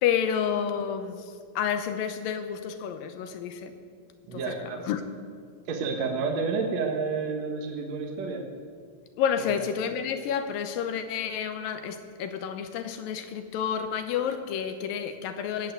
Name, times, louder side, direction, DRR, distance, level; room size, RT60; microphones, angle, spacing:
voice 1, 0.0-3.7 4.3-5.1 9.2-15.7, left 8 dB, 80° left, 9 dB, 2.5 m, -30 dB
voice 2, 4.3-4.9 5.7-8.4 9.5-9.6, right 4 dB, 60° right, 2 dB, 2.3 m, -30 dB
18.0 x 8.5 x 9.2 m, 2.1 s
omnidirectional pair, 4.1 m